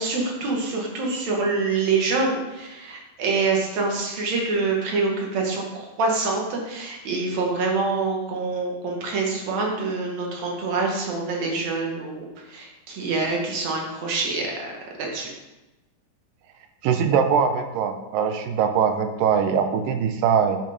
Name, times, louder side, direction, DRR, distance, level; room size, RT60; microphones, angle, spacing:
voice 1, 0.0-14.7 15.0-15.3, right 3 dB, 55° right, 0 dB, 2.8 m, -26 dB
voice 2, 16.8-20.6, right 7 dB, 80° right, 7 dB, 2.4 m, -22 dB
10.5 x 6.4 x 5.2 m, 1.0 s
omnidirectional pair, 4.1 m